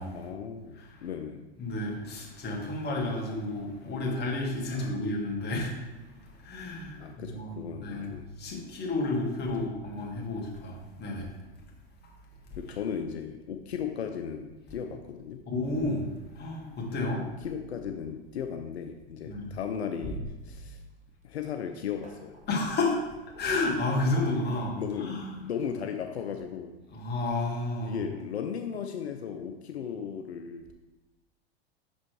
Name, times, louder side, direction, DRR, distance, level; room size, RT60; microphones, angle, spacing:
voice 1, 0.1-1.5 4.7-5.1 7.0-8.5 12.6-15.4 16.9-20.8 21.2-22.3 24.8-26.7 27.8-30.7, left 7 dB, 85° left, 5 dB, 0.6 m, -36 dB
voice 2, 0.8-1.1 1.6-11.3 15.5-16.1 16.3-17.2 19.2-19.5 20.0-20.2 22.5-23.0 23.4-25.3 26.9-28.0, left 2 dB, 30° left, -1 dB, 2.0 m, -31 dB
sound 1, 20.7-21.4 21.6-22.8 23.3-25.0 26.1-26.2 27.8-27.9 28.2-28.3, right 2 dB, 20° right, 1.4 m, -50 dB
6.1 x 4.2 x 4.6 m, 1.1 s
hypercardioid pair, 95°, 32 cm